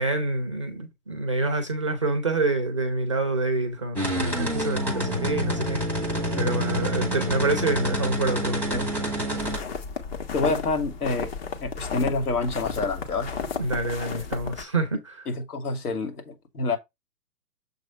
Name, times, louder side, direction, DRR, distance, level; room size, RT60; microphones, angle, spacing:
voice 1, 0.0-5.8 6.3-8.8 13.5-15.2, right 2 dB, 20° right, 0.4 m, -27 dB
sound 1, 4.0-9.6, equal, 5° left, 1.0 m, -28 dB
voice 2, 6.3-6.6 8.7-8.9 10.3-11.3 11.6-13.3 15.3-16.8, left 3 dB, 75° left, 2.7 m, -28 dB
sound 2, 9.4-14.6, left 5 dB, 40° left, 1.4 m, -33 dB
7.0 x 3.1 x 5.3 m
hypercardioid pair, 150°, 46 cm